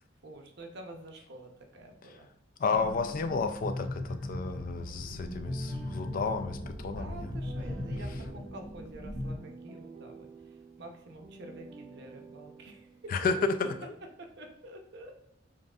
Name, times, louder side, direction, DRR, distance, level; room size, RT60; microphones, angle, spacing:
voice 1, 0.2-2.3 6.9-12.9 13.6-13.7 14.4-15.1, right 1 dB, 60° right, 3 dB, 0.7 m, -48 dB
voice 2, 2.6-7.3 13.1-13.8, left 4 dB, 45° left, 9 dB, 0.3 m, -31 dB
sound 1, 2.7-9.4, left 1 dB, 10° left, 0.9 m, -38 dB
sound 2, 5.2-13.4, right 4 dB, 30° right, 0.5 m, -50 dB
7.2 x 2.6 x 2.3 m, 0.81 s
head